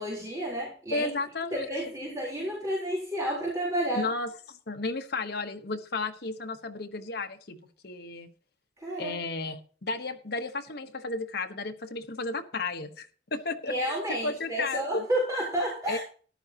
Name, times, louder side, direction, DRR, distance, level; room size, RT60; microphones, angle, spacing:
voice 1, 0.0-1.1 1.5-4.1 8.8-9.2 13.7-16.0, right 1 dB, 20° right, -5 dB, 4.0 m, -31 dB
voice 2, 0.9-1.7 3.9-7.6 7.8-8.3 9.0-15.0 15.9-16.0, left 3 dB, 65° left, 6 dB, 1.2 m, -33 dB
13.5 x 11.0 x 3.0 m, 0.42 s
head